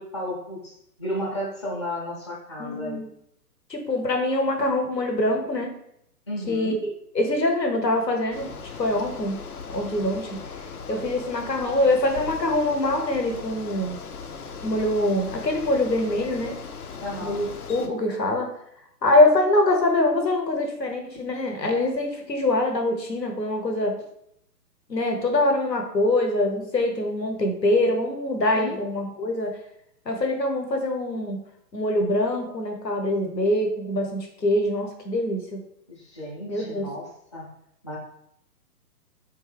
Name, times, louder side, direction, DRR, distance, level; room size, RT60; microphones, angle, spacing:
voice 1, 0.0-3.0 6.3-6.8 17.0-17.4 28.5-28.8 35.9-37.5 37.8-38.0, left 1 dB, 20° left, -4 dB, 0.5 m, -33 dB
voice 2, 2.6-3.1 3.7-5.7 6.5-9.4 9.7-10.4 10.9-14.0 14.6-16.6 17.2-18.5 19.0-24.0 24.9-29.5 30.1-31.4 31.7-35.6 36.5-36.9, left 1 dB, 90° left, 3 dB, 0.9 m, -24 dB
Bicycle, 8.3-17.9, left 5 dB, 65° left, 0.6 m, -38 dB
3.5 x 2.6 x 3.3 m, 0.74 s
figure-of-eight pair, 125°, 48 cm